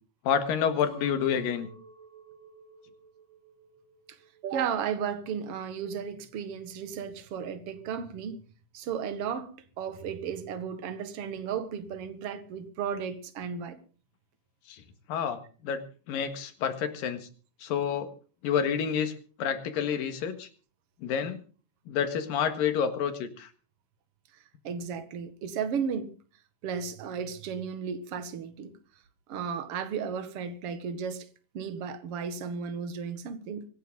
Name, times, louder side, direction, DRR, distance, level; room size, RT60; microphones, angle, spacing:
voice 1, 0.2-1.7 14.7-14.8 15.1-17.3 17.6-18.1 18.4-20.5 21.0-21.4 21.9-23.5, left 7 dB, 90° left, 3.4 m, -29 dB
Chink clink, 0.8-5.1 5.5-6.1, right 5 dB, 65° right, 7.2 m, -53 dB
voice 2, 4.4-8.4 8.7-13.8 24.3-26.1 26.6-28.7 29.3-31.3 31.5-33.7, right 7 dB, 50° right, 2.3 m, -34 dB
24.5 x 11.0 x 3.9 m
omnidirectional pair, 3.9 m